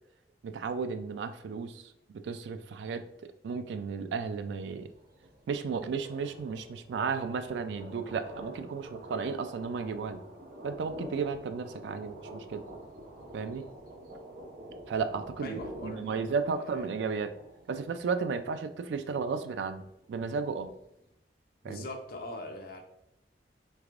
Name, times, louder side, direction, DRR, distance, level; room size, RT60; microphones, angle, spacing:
voice 1, 0.4-1.9 2.2-3.1 3.4-4.9 5.5-10.2 10.6-12.7 13.3-13.7 14.9-15.5 15.8-17.3 17.7-19.8 20.1-20.7 21.6-21.8, right 5 dB, 80° right, 10 dB, 0.3 m, -34 dB
sound 1, 4.2-21.1, right 1 dB, 55° right, 0.7 m, -48 dB
voice 2, 15.4-16.2 16.5-16.9 21.6-22.8, left 1 dB, 55° left, 3 dB, 0.6 m, -41 dB
3.4 x 3.3 x 2.4 m, 0.80 s
head